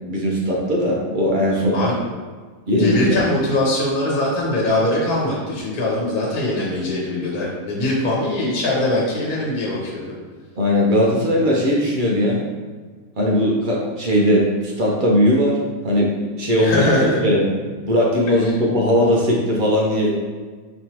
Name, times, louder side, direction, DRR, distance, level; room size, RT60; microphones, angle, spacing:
voice 1, 0.1-1.8 2.7-3.0 10.6-12.4 13.2-15.6 15.8-16.1 16.4-16.8 17.2-17.4 17.8-20.1, equal, 65° right, -4 dB, 0.5 m, -18 dB
voice 2, 2.8-10.0 16.6-17.2 18.4-18.5, left 1 dB, 65° left, -5 dB, 1.4 m, -21 dB
5.3 x 3.0 x 2.9 m, 1.5 s
omnidirectional pair, 1.8 m